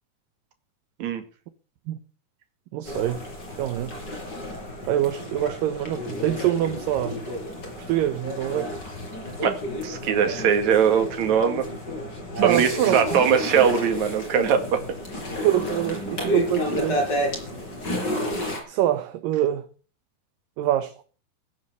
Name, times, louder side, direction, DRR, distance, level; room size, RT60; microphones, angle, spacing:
voice 1, 2.7-3.2 3.6-3.9 4.9-7.2 7.9-8.7 12.4-13.0 15.4-17.0 18.7-19.6 20.6-21.0, right 12 dB, 70° right, 2.4 m, -24 dB
sound 1, 2.9-18.6, left 1 dB, 25° left, 5.2 m, -31 dB
voice 2, 9.4-11.7 12.4-14.8, right 7 dB, 55° right, 3.0 m, -21 dB
17.0 x 9.7 x 6.9 m
omnidirectional pair, 4.5 m